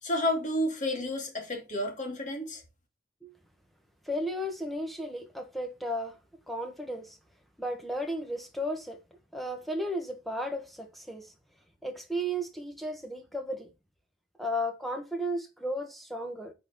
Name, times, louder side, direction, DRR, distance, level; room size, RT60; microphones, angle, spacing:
voice 1, 0.0-2.6, left 1 dB, 40° left, 2.4 m, -31 dB
voice 2, 4.0-6.1 6.5-7.2 7.6-9.0 9.3-11.3 11.8-13.7 14.4-16.5, equal, ahead, 1.4 m, -34 dB
7.9 x 4.2 x 4.2 m
head